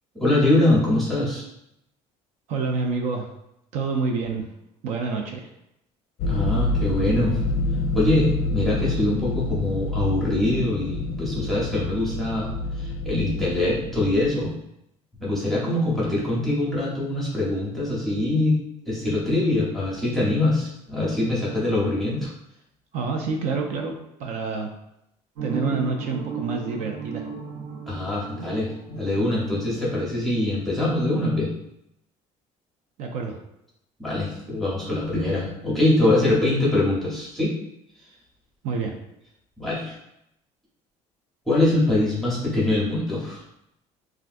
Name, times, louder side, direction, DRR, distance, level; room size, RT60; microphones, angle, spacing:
voice 1, 0.1-1.5 6.3-7.4 7.9-14.5 15.2-18.6 18.9-22.3 27.9-31.5 34.0-37.5 39.6-39.9 41.5-43.4, left 1 dB, ahead, -6 dB, 0.8 m, -23 dB
voice 2, 2.5-3.3 3.7-4.5 4.8-5.5 22.9-24.7 25.4-27.2 33.0-33.4 38.6-39.0, right 4 dB, 60° right, 3 dB, 0.4 m, -27 dB
sound 1, 6.2-14.3, left 2 dB, 55° left, 0.4 m, -27 dB
sound 2, 25.4-30.1, right 5 dB, 75° right, 0.9 m, -35 dB
3.4 x 2.4 x 2.5 m, 0.81 s
cardioid pair, 165°, 14 cm